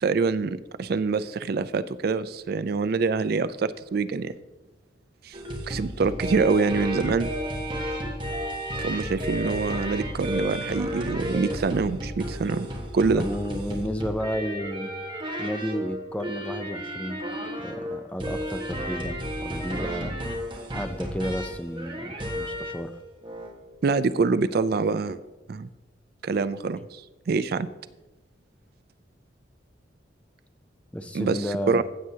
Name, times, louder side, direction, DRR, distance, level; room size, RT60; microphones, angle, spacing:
voice 1, 0.0-4.3 5.2-5.4 5.7-7.3 8.8-13.3 23.8-25.2 25.5-25.7 26.2-27.7 31.1-31.8, right 4 dB, 55° right, 14 dB, 0.4 m, -25 dB
sound 1, 5.3-22.9 23.2-23.5, equal, 25° right, 1.4 m, -33 dB
voice 2, 13.1-14.9 15.4-17.2 17.6-20.2 20.7-22.9 30.9-31.8, equal, 5° left, 8 dB, 0.5 m, -32 dB
15.5 x 7.6 x 2.8 m, 1.1 s
head